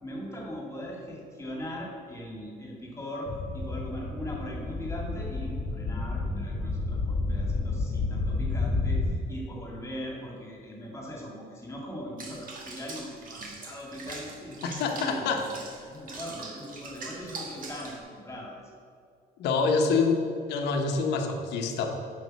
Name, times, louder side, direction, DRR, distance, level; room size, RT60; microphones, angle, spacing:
voice 1, 0.0-18.7, equal, 15° left, -2 dB, 2.1 m, -40 dB
sound 1, 3.3-9.2, left 3 dB, 40° left, 1.5 m, -30 dB
Water / Bathtub (filling or washing), 12.2-18.0, right 3 dB, 55° right, 1.6 m, -42 dB
voice 2, 14.6-15.5 19.4-20.2 20.5-21.9, left 4 dB, 80° left, 4 dB, 1.1 m, -26 dB
8.4 x 5.3 x 6.4 m, 2.3 s
cardioid pair, 110°, 17 cm